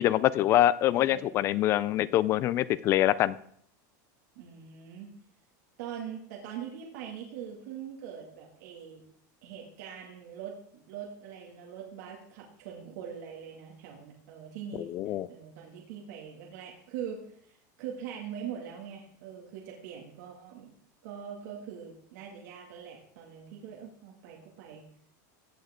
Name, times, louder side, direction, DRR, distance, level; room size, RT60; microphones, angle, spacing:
voice 1, 0.0-3.4 14.8-15.3, left 13 dB, 25° left, 19 dB, 0.3 m, -25 dB
voice 2, 1.0-1.7 4.4-5.1 5.8-9.0 9.4-17.2 17.8-20.7 21.0-24.8, right 8 dB, 65° right, -1 dB, 2.2 m, -42 dB
16.0 x 8.6 x 3.7 m, 0.64 s
supercardioid pair, 170°, 10 cm